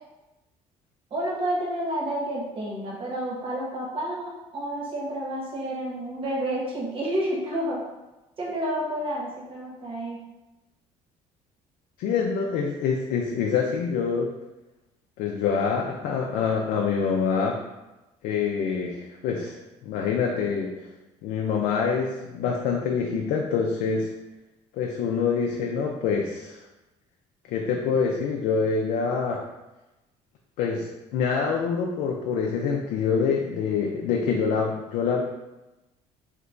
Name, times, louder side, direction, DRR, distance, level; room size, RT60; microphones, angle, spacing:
voice 1, 1.1-7.9 8.4-10.2, right 1 dB, 40° right, -3 dB, 1.0 m, -30 dB
voice 2, 12.0-14.3 15.2-17.6 18.2-20.7 21.2-24.1 24.7-26.6 27.5-29.4 30.6-35.2, left 5 dB, 80° left, 0 dB, 0.4 m, -26 dB
3.4 x 2.9 x 2.5 m, 1.0 s
cardioid pair, 120°, 14 cm